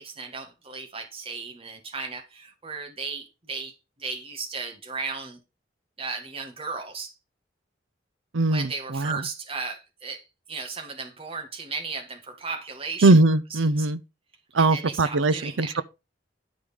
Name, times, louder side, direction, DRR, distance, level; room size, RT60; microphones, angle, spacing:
voice 1, 0.0-3.7 4.0-5.4 6.0-7.1 8.5-13.1 13.5-13.9 14.6-15.8, right 4 dB, 30° right, 1.8 m, -35 dB
voice 2, 8.3-9.2 13.0-14.0 14.5-15.8, right 2 dB, 90° right, 0.7 m, -21 dB
10.5 x 4.9 x 5.2 m
head